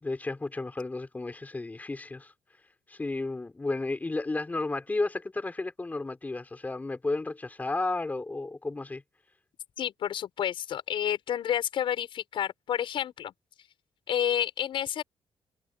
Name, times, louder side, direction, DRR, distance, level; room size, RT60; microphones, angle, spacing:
voice 1, 0.0-2.3 2.9-9.0, left 2 dB, 20° left, 4.5 m, -33 dB
voice 2, 9.8-13.3 14.1-15.0, left 10 dB, 70° left, 6.0 m, -30 dB
cardioid pair, 110°, 9 cm